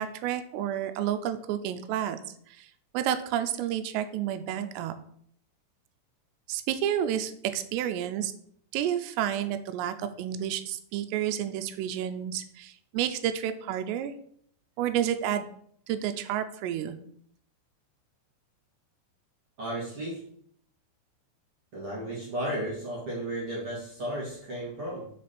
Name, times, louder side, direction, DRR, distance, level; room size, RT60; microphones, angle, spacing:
voice 1, 0.0-2.2 2.6-2.7 2.9-4.9 6.5-8.3 8.7-14.1 14.8-15.5 15.9-17.0, right 10 dB, 90° right, 10 dB, 2.7 m, -30 dB
voice 2, 19.6-20.2 21.7-25.1, right 1 dB, 45° right, -6 dB, 1.9 m, -34 dB
6.2 x 5.0 x 4.2 m, 0.64 s
omnidirectional pair, 4.8 m